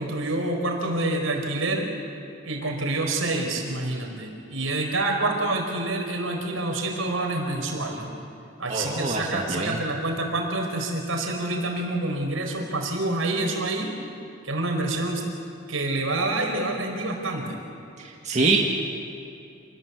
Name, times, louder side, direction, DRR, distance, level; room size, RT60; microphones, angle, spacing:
voice 1, 0.0-1.9 2.4-8.1 8.6-13.9 14.4-15.2 15.7-17.6, right 2 dB, 75° right, 2 dB, 4.7 m, -27 dB
voice 2, 8.7-9.8 18.2-18.6, right 3 dB, 35° right, -1 dB, 1.9 m, -24 dB
28.0 x 20.0 x 8.4 m, 2.6 s
head